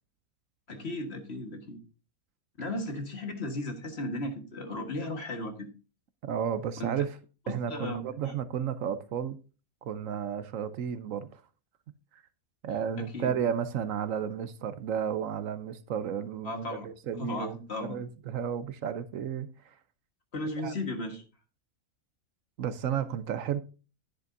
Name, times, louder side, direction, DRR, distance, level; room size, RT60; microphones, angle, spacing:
voice 1, 0.7-1.8 2.6-5.7 6.8-6.9 7.7-8.3 13.0-13.3 16.4-16.9 17.1-18.0 20.3-21.2, left 1 dB, 45° left, 1.7 m, -35 dB
voice 2, 6.2-7.2 7.5-9.4 9.8-11.4 12.1-12.2 12.6-19.8 20.6-20.7 22.6-23.6, right 8 dB, 70° right, 1.0 m, -33 dB
11.0 x 10.0 x 2.6 m
omnidirectional pair, 1.5 m